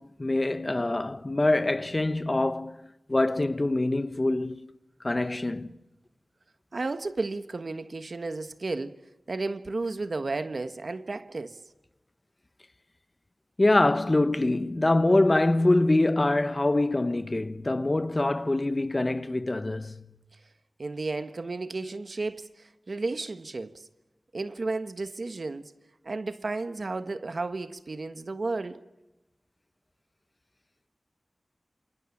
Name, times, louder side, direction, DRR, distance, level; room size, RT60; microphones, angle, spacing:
voice 1, 0.0-2.8 3.1-4.7 5.0-5.7 13.6-20.1, left 2 dB, 35° left, 1.1 m, -24 dB
voice 2, 6.7-9.0 9.3-11.6 20.8-23.9 24.3-25.7 26.0-28.8, right 3 dB, 70° right, 1.4 m, -33 dB
28.0 x 28.0 x 7.2 m
wide cardioid pair, 75°, 0 cm